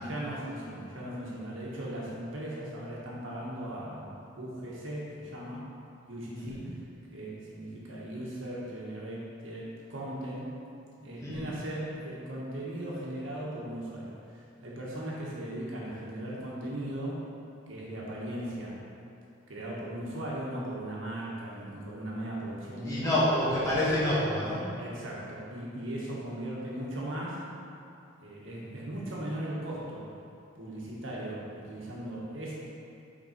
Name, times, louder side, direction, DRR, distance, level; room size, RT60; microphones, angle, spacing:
voice 1, 0.0-5.7 6.1-6.8 7.1-10.6 11.0-17.3 17.7-18.8 19.5-23.2 24.8-27.4 28.2-30.0 30.6-32.5, right 1 dB, 65° right, -5 dB, 1.4 m, -38 dB
voice 2, 6.4-6.7 11.2-11.5 22.8-24.7, left 1 dB, 15° left, -9 dB, 1.5 m, -28 dB
5.9 x 5.1 x 4.3 m, 2.7 s
head